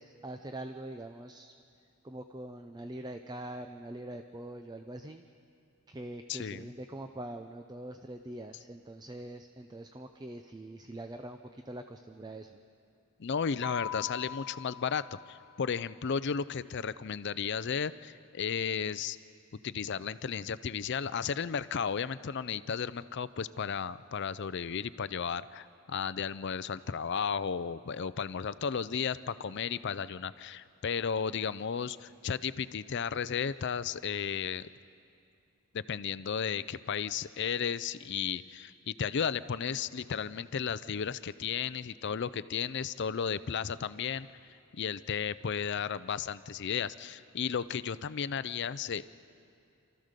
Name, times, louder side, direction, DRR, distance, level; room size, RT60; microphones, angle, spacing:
voice 1, 0.0-1.5 2.0-5.3 5.9-12.6, right 1 dB, 20° right, 6 dB, 0.5 m, -43 dB
voice 2, 6.3-6.7 13.2-19.2 19.6-34.7 35.7-44.3 44.7-49.0, left 7 dB, 55° left, 16 dB, 0.5 m, -34 dB
Mallet percussion, 13.6-15.7, left 8 dB, 70° left, 1.2 m, -42 dB
28.5 x 14.0 x 6.7 m, 2.5 s
head